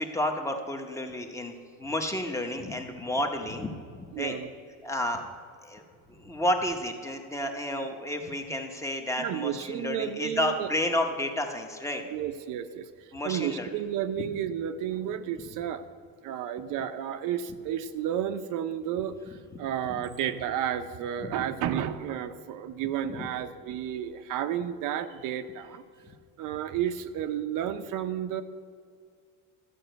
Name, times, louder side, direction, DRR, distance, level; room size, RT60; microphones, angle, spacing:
voice 1, 0.0-4.3 4.8-5.2 5.6-5.8 6.1-12.0 13.1-13.7 14.2-14.3 19.9-20.0 21.2-21.3 23.1-23.3, left 1 dB, 10° left, 4 dB, 0.8 m, -31 dB
voice 2, 4.1-4.5 9.2-10.7 12.1-15.9 16.2-25.8 26.4-28.4, right 10 dB, 70° right, 10 dB, 0.7 m, -32 dB
13.0 x 5.5 x 7.8 m, 2.2 s
cardioid pair, 160°, 33 cm